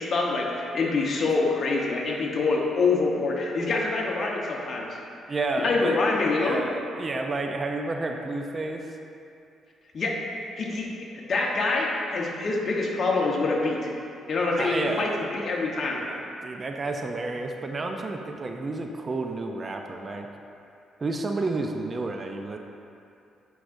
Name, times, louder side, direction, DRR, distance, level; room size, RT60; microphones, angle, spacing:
voice 1, 0.0-4.9 5.6-6.6 9.9-10.2 10.6-10.9 11.3-13.8 14.3-16.0, left 3 dB, 50° left, -1 dB, 1.0 m, -25 dB
voice 2, 5.3-5.9 6.3-9.0 14.6-15.2 16.0-20.3 21.0-22.6, right 2 dB, 35° right, 4 dB, 0.5 m, -31 dB
10.0 x 4.7 x 2.6 m, 2.6 s
cardioid pair, 90°, 0 cm